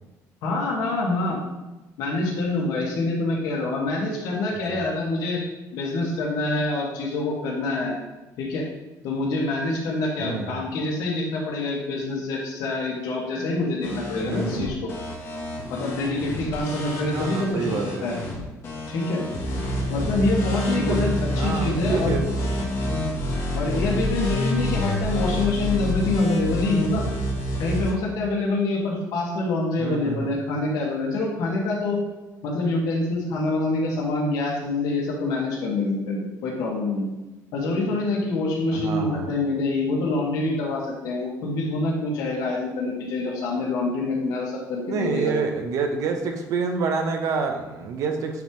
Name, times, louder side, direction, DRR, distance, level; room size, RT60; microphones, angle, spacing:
voice 1, 0.4-1.4 2.0-5.4 5.7-7.9 8.4-8.7 9.0-14.9 15.7-17.8 18.0-18.1 18.9-19.2 19.9-21.1 21.4-22.2 23.5-27.0 27.6-32.0 32.4-37.1 37.5-45.3, left 2 dB, 80° left, -2 dB, 1.8 m, -26 dB
voice 2, 10.2-10.6 14.2-14.7 17.1-18.1 20.6-22.3 29.8-30.3 38.7-39.3 44.9-48.4, right 5 dB, 55° right, 5 dB, 0.8 m, -28 dB
sound 1, 13.8-27.9, left 1 dB, 40° left, 1.2 m, -27 dB
9.2 x 3.7 x 3.1 m, 1.1 s
cardioid pair, 165°, 7 cm